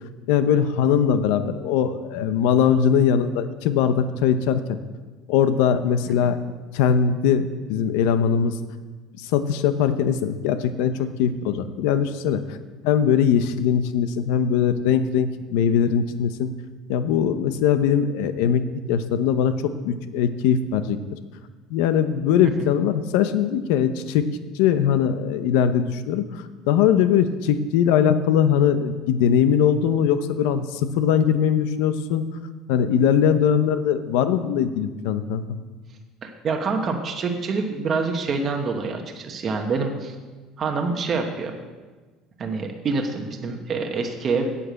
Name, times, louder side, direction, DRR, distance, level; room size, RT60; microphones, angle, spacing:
voice 1, 0.3-4.8 5.3-6.4 6.7-8.6 9.2-12.6 12.8-16.5 16.9-21.0 21.7-24.2 24.5-32.2 32.7-35.4, left 8 dB, 90° left, 11 dB, 0.8 m, -21 dB
voice 2, 36.2-40.1 40.6-41.6 42.4-44.5, right 4 dB, 25° right, 3 dB, 1.0 m, -26 dB
8.5 x 8.2 x 7.7 m, 1.3 s
cardioid pair, 175°, 0 cm